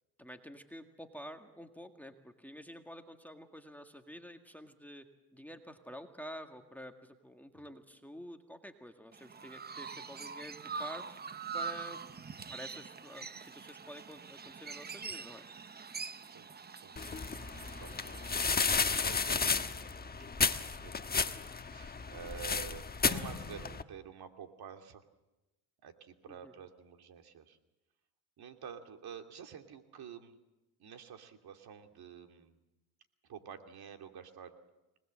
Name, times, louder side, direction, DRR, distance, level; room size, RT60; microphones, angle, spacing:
voice 1, 0.2-5.1 5.3-11.0 11.5-12.0 12.5-15.5 26.3-26.5, equal, 5° left, 5 dB, 1.9 m, -49 dB
Chirp tweet, 9.1-19.7, right 5 dB, 20° right, 0.9 m, -44 dB
sound 1, 17.0-23.8, left 5 dB, 20° left, 1.2 m, -33 dB
voice 2, 17.7-19.9 20.6-21.4 21.7-25.0 25.8-27.6 28.4-30.4 30.8-32.6 33.3-34.6, right 8 dB, 50° right, 5 dB, 2.7 m, -49 dB
25.0 x 19.5 x 7.7 m, 1.0 s
supercardioid pair, 90°, 46 cm